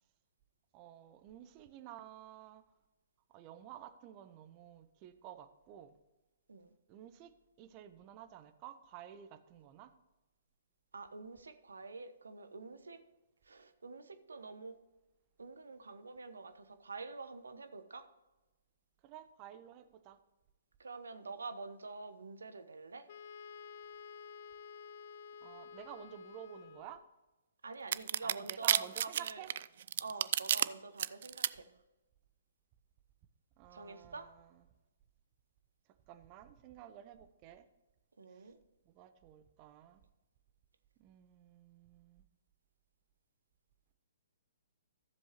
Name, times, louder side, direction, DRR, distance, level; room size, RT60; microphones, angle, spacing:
voice 1, 0.7-2.6 3.3-6.0 6.9-9.9 19.0-20.2 25.4-27.0 28.2-29.5 33.6-34.6 36.1-37.6 38.3-38.5 38.9-40.0 41.0-42.2, right 11 dB, 30° right, 10 dB, 0.8 m, -52 dB
voice 2, 10.9-13.0 13.5-14.7 15.4-18.0 20.8-23.0 27.6-29.4 30.0-31.6 33.7-34.2 38.2-38.6, right 4 dB, 75° right, 9 dB, 1.0 m, -47 dB
Wind instrument woodwind instrument, 23.1-27.1, left 6 dB, 50° left, 0.4 m, -51 dB
sound 1, 27.9-30.7 31.0-31.5, right 10 dB, 50° right, 0.3 m, -30 dB
14.0 x 7.4 x 3.0 m, 1.1 s
figure-of-eight pair, 125°, 0 cm